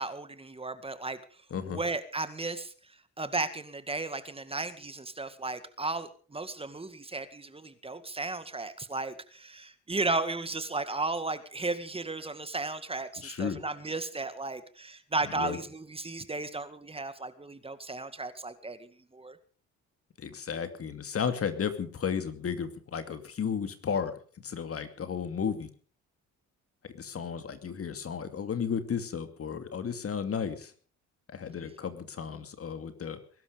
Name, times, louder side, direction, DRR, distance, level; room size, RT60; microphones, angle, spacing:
voice 1, 0.0-19.4, right 3 dB, 20° right, 11 dB, 2.0 m, -35 dB
voice 2, 1.5-1.8 13.2-13.6 15.4-15.6 20.2-24.1 24.4-25.7 26.8-30.7 31.3-33.2, left 7 dB, 50° left, 9 dB, 2.5 m, -33 dB
21.5 x 12.0 x 5.3 m, 0.42 s
cardioid pair, 90°, 30 cm